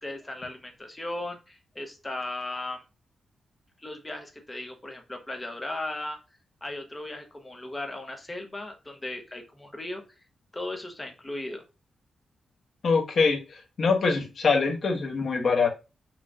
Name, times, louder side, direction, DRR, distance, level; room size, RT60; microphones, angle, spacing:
voice 1, 0.0-2.8 3.8-6.2 6.6-10.0 10.5-11.6, left 2 dB, 15° left, 4 dB, 1.0 m, -36 dB
voice 2, 12.8-13.4 13.8-15.7, left 4 dB, 55° left, 1 dB, 1.2 m, -23 dB
6.0 x 3.0 x 2.6 m, 0.28 s
wide cardioid pair, 140°, 0 cm